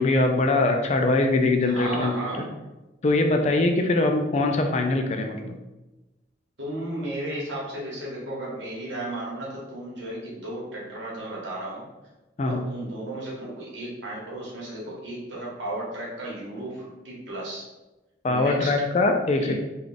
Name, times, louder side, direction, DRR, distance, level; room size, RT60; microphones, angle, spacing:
voice 1, 0.0-2.1 3.0-5.6 12.4-12.6 18.2-19.5, left 2 dB, 35° left, 4 dB, 0.3 m, -22 dB
voice 2, 1.6-2.5 6.6-11.9 12.4-17.6 18.3-18.7 19.4-19.5, right 1 dB, 75° right, -4 dB, 1.3 m, -34 dB
3.4 x 2.3 x 3.8 m, 1.1 s
head